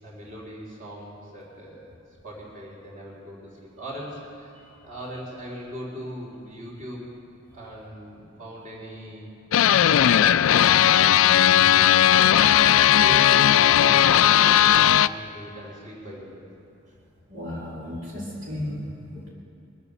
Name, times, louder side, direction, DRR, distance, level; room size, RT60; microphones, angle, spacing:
voice 1, 0.0-2.0 2.2-7.1 7.5-9.3 9.8-11.7 12.1-14.7 15.0-16.5, equal, 40° right, -4 dB, 3.7 m, -40 dB
sound 1, 9.5-15.1, left 10 dB, 80° left, 0.3 m, -17 dB
voice 2, 17.3-19.3, left 1 dB, 65° right, -6 dB, 2.6 m, -34 dB
22.5 x 9.0 x 7.0 m, 2.6 s
head